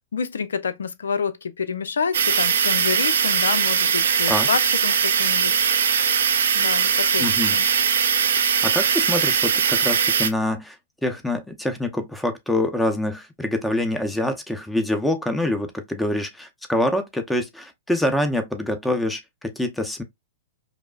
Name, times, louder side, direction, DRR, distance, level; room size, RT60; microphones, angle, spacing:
voice 1, 0.1-5.5 6.5-7.7, left 6 dB, 85° left, 0.5 m, -28 dB
sound 1, 2.1-10.3, right 7 dB, 75° right, 0.5 m, -20 dB
voice 2, 7.2-7.6 8.6-10.8 11.0-20.0, left 1 dB, 5° left, 0.7 m, -25 dB
5.0 x 2.0 x 2.4 m
hypercardioid pair, 120°, 0 cm